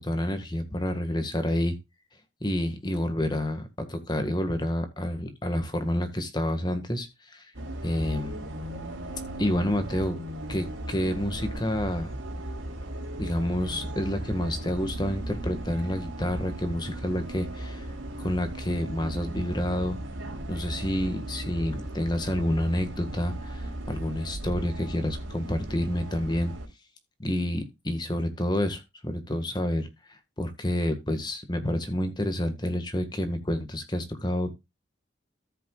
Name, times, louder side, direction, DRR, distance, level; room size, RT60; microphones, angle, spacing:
voice 1, 0.0-1.8 2.4-7.5 7.8-8.4 9.4-10.2 10.5-12.2 13.2-17.9 18.2-20.0 20.5-26.5 27.2-34.5, left 1 dB, 20° left, 8 dB, 1.7 m, -29 dB
Bus, 7.5-26.7, right 1 dB, 75° right, 3.0 m, -37 dB
13.5 x 7.9 x 2.4 m, 0.23 s
head